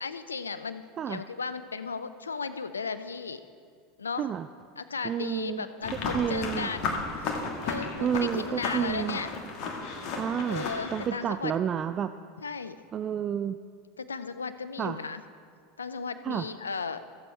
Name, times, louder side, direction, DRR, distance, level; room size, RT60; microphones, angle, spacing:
voice 1, 0.0-3.4 4.0-4.3 4.8-7.3 7.6-9.3 10.5-11.5 12.4-12.8 14.0-15.2 15.8-17.0, left 5 dB, 90° left, 12 dB, 0.4 m, -35 dB
voice 2, 5.0-5.7 6.1-6.7 8.0-9.2 10.2-10.7 10.9-12.1 12.9-13.6 14.8-15.0 16.2-16.4, right 8 dB, 35° right, 10 dB, 0.3 m, -30 dB
sound 1, 5.8-11.1, left 4 dB, 55° left, 1.5 m, -34 dB
15.0 x 7.1 x 4.6 m, 2.2 s
hypercardioid pair, 80°, 0 cm